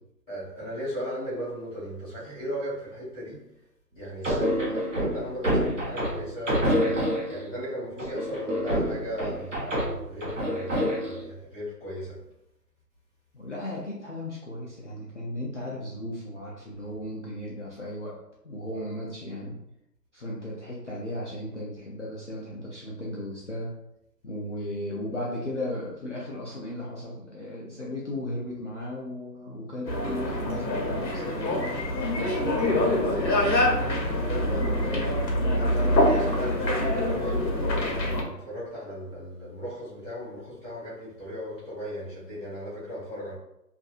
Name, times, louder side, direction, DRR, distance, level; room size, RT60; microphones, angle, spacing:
voice 1, 0.3-3.4 3.9-12.2 32.1-32.9 34.2-35.2 35.5-43.3, equal, 5° left, 1.0 m, -36 dB
sound 1, 4.2-7.5 8.0-11.2, equal, 45° right, 1.0 m, -27 dB
voice 2, 13.3-18.1 18.4-19.6 20.1-23.7 24.2-31.9 32.1-33.7 34.0-35.2, left 1 dB, 50° left, 0.5 m, -36 dB
sound 2, 29.9-38.2, left 1 dB, 85° left, 0.8 m, -25 dB
2.7 x 2.5 x 2.4 m
figure-of-eight pair, 165°, 49 cm